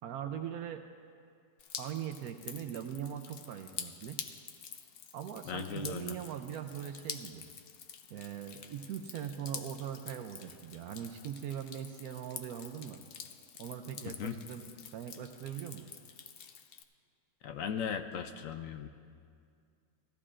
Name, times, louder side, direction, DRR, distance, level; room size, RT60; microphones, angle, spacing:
voice 1, 0.0-0.8 1.8-4.2 5.1-7.4 8.1-13.0 13.6-15.9, right 9 dB, 75° right, 7 dB, 1.0 m, -41 dB
Drip, 1.6-16.8, left 7 dB, 85° left, 0.5 m, -47 dB
voice 2, 5.5-6.2 14.1-14.4 17.4-18.9, left 7 dB, 70° left, 8 dB, 0.9 m, -38 dB
17.5 x 14.0 x 2.5 m, 2.2 s
omnidirectional pair, 1.6 m